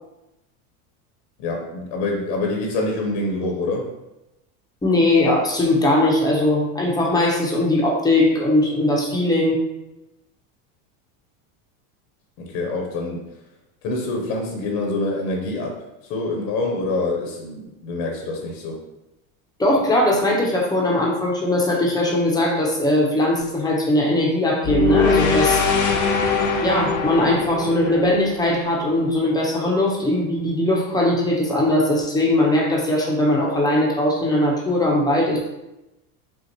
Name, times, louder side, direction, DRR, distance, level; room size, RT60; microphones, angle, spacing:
voice 1, 1.4-3.9 12.4-13.2 13.8-15.8 16.1-18.8, left 2 dB, 65° left, 1 dB, 1.0 m, -26 dB
voice 2, 4.8-9.6 19.6-25.6 26.6-35.5, left 1 dB, 10° left, -3 dB, 0.7 m, -20 dB
sound 1, 24.6-28.9, left 5 dB, 45° left, 0.7 m, -22 dB
5.6 x 2.5 x 2.9 m, 0.94 s
supercardioid pair, 135°, 42 cm